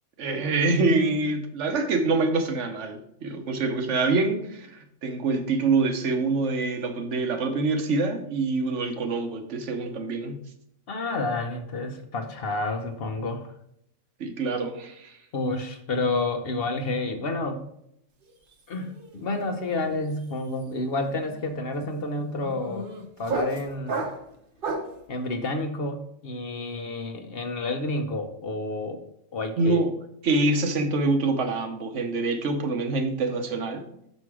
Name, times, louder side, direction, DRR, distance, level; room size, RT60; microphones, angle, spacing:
voice 1, 0.2-10.4 14.2-15.2 29.6-30.0 30.2-33.9, right 3 dB, 70° right, 6 dB, 1.2 m, -25 dB
voice 2, 10.9-13.5 15.3-17.6 18.7-22.9 23.2-24.1 25.1-29.0 29.3-29.8, left 2 dB, 55° left, 6 dB, 0.9 m, -30 dB
sound 1, 18.2-18.5 18.8-25.0, right 2 dB, 45° right, 1.0 m, -34 dB
6.2 x 5.3 x 4.7 m, 0.76 s
omnidirectional pair, 1.3 m